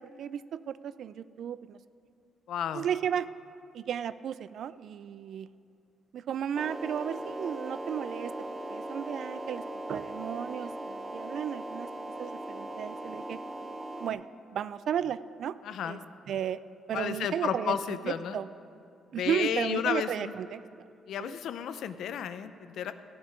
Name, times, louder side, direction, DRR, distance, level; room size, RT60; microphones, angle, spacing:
voice 1, 0.0-1.8 2.7-3.3 3.7-5.5 6.1-8.3 8.7-9.6 9.9-11.9 12.2-13.4 14.0-14.2 14.5-15.5 15.8-16.0 16.3-17.8 18.0-18.5 19.1-20.6 21.2-21.4, right 9 dB, 65° right, 16 dB, 0.4 m, -34 dB
voice 2, 2.5-2.9 15.6-16.0 16.9-18.4 19.1-20.3 21.1-22.9, left 9 dB, 75° left, 11 dB, 0.6 m, -32 dB
sound 1, 6.5-14.1, right 1 dB, 25° right, 0.9 m, -39 dB
15.5 x 5.7 x 9.5 m, 2.4 s
cardioid pair, 90°, 0 cm